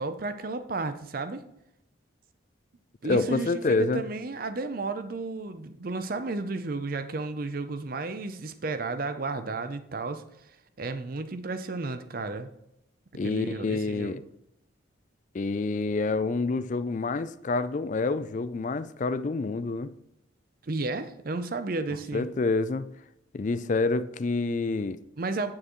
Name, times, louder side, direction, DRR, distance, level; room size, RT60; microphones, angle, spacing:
voice 1, 0.0-1.4 3.0-3.5 3.8-10.2 10.8-12.5 13.2-14.1 20.6-22.3 25.2-25.5, right 3 dB, 45° right, 0.6 m, -33 dB
voice 2, 3.0-4.0 13.1-14.2 15.3-19.9 22.1-22.9 23.3-25.0, left 3 dB, 40° left, 0.3 m, -27 dB
8.7 x 7.4 x 3.1 m
head